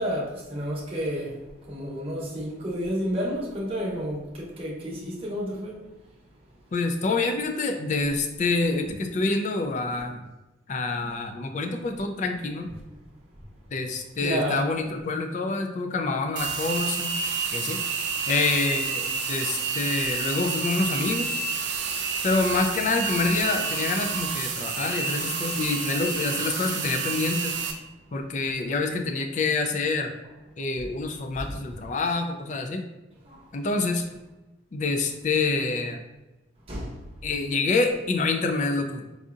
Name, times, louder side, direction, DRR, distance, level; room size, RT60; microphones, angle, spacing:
voice 1, 0.0-1.4 1.6-5.8 14.2-14.6 31.3-31.5 33.2-33.4 36.7-37.0, equal, 30° right, -4 dB, 0.8 m, -30 dB
voice 2, 6.7-10.2 10.7-12.7 13.7-17.1 17.5-17.8 18.3-21.3 22.2-27.5 28.1-30.1 30.6-32.9 33.5-34.0 34.7-36.0 37.2-39.0, left 3 dB, 40° left, 5 dB, 0.3 m, -27 dB
sound 1, 16.4-27.7, right 5 dB, 60° right, 0.5 m, -29 dB
4.7 x 2.6 x 2.5 m, 1.0 s
head